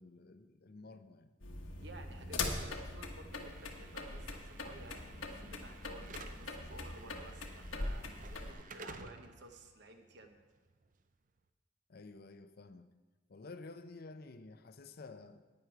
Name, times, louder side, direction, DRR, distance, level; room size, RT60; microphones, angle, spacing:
voice 1, 0.0-1.3 11.9-12.9 13.3-15.4, left 3 dB, 50° left, 10 dB, 0.6 m, -51 dB
sound 1, 1.4-8.5, left 3 dB, 80° left, 1.3 m, -42 dB
voice 2, 1.8-10.4, right 2 dB, 60° right, 5 dB, 1.0 m, -54 dB
Slam / Alarm, 3.3-11.4, right 4 dB, 40° right, 0.5 m, -55 dB
10.5 x 9.3 x 4.6 m, 1.3 s
head